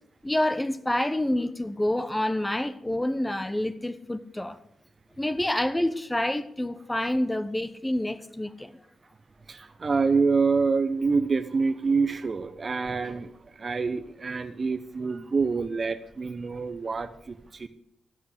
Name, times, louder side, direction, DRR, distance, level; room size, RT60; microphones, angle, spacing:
voice 1, 0.2-4.6 5.2-8.7, left 1 dB, 15° left, 1.1 m, -28 dB
voice 2, 9.5-17.7, right 4 dB, 45° right, 0.9 m, -26 dB
13.5 x 7.9 x 8.3 m
supercardioid pair, 45°, 0 cm